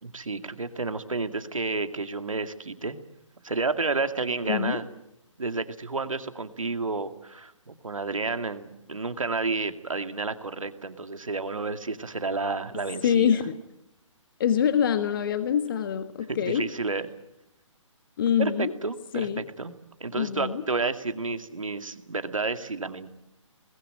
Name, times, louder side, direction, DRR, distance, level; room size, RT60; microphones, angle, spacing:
voice 1, 0.0-3.0 3.4-4.8 5.4-13.4 16.3-17.0 18.4-19.7 20.0-23.1, right 3 dB, 80° right, 9 dB, 2.3 m, -31 dB
voice 2, 4.4-4.8 13.0-13.5 14.4-16.6 18.2-18.7 19.1-19.4 20.1-20.6, left 8 dB, 40° left, 11 dB, 1.5 m, -25 dB
27.0 x 21.0 x 8.7 m, 0.86 s
figure-of-eight pair, 145°, 17 cm